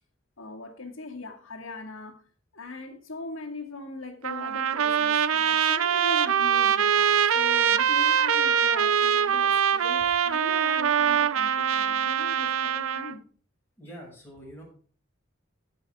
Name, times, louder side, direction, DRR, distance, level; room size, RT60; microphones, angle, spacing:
voice 1, 0.4-2.2 2.5-13.2, left 3 dB, 75° left, 2.3 m, -40 dB
Trumpet, 4.2-13.2, right 8 dB, 90° right, 0.5 m, -23 dB
voice 2, 13.8-14.6, equal, 10° left, 5.8 m, -44 dB
14.0 x 5.7 x 4.9 m
head